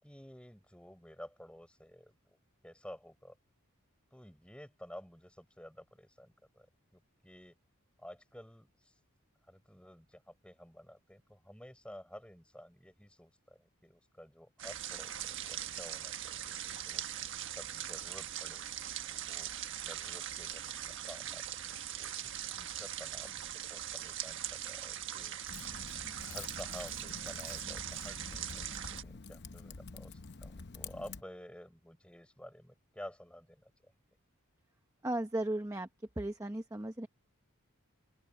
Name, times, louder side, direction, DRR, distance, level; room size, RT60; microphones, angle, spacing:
voice 1, 0.0-2.4 2.6-3.4 4.1-6.7 6.9-7.6 8.0-8.9 9.5-17.0 17.5-18.6 19.1-19.5 19.9-25.4 26.2-33.9, equal, 5° left, 5.8 m, -52 dB
sound 1, 14.6-29.0, right 11 dB, 55° right, 1.5 m, -41 dB
Typing, 25.5-31.2, left 4 dB, 50° left, 0.8 m, -47 dB
voice 2, 35.0-35.9 36.2-37.1, right 1 dB, 15° right, 0.8 m, -35 dB
open air
head